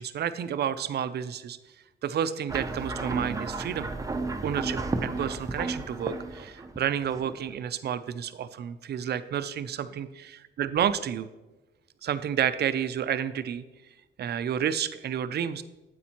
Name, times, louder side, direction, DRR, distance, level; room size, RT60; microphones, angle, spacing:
voice 1, 0.0-1.6 2.0-3.9 4.4-10.1 10.6-11.3 12.0-13.6 14.2-15.6, right 9 dB, 55° right, 13 dB, 0.5 m, -30 dB
sound 1, 2.5-7.7, right 3 dB, 15° right, 0.7 m, -33 dB
9.3 x 8.0 x 2.9 m, 1.1 s
cardioid pair, 90°, 20 cm